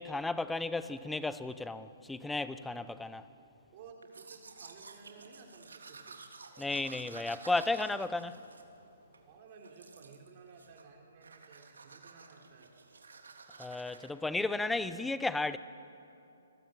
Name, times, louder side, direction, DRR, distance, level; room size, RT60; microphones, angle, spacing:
voice 1, 0.0-3.2 6.6-8.4 13.6-15.6, left 2 dB, 5° left, 0.7 m, -34 dB
voice 2, 3.7-6.2 9.3-12.7, right 5 dB, 40° right, 3.3 m, -55 dB
Domestic sounds home sounds, 4.0-9.2 9.6-10.3 10.6-10.9 11.2-14.1, right 4 dB, 90° right, 3.1 m, -52 dB
27.5 x 20.0 x 8.9 m
hypercardioid pair, 155°, 0 cm